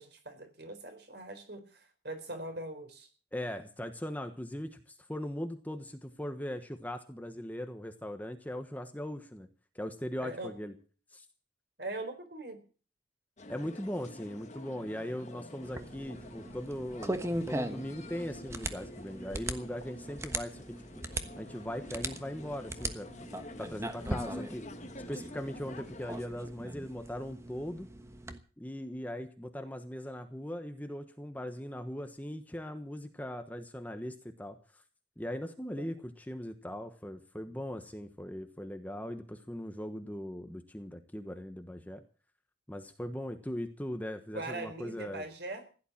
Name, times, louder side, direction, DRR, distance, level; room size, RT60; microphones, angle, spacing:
voice 1, 0.0-3.1 10.2-10.5 11.8-12.6 35.8-35.9 44.3-45.8, right 2 dB, 55° right, 7 dB, 4.1 m, -41 dB
voice 2, 3.3-9.5 9.7-10.7 11.1-11.2 13.5-20.6 21.4-23.1 23.6-24.6 25.1-27.9 28.6-34.6 35.2-42.0 42.7-45.2, equal, 10° left, 7 dB, 1.2 m, -39 dB
sound 1, 13.4-26.3, left 1 dB, 35° left, 1.5 m, -48 dB
sound 2, 15.6-28.4, right 1 dB, 15° right, 1.2 m, -40 dB
16.0 x 11.5 x 7.3 m, 0.40 s
head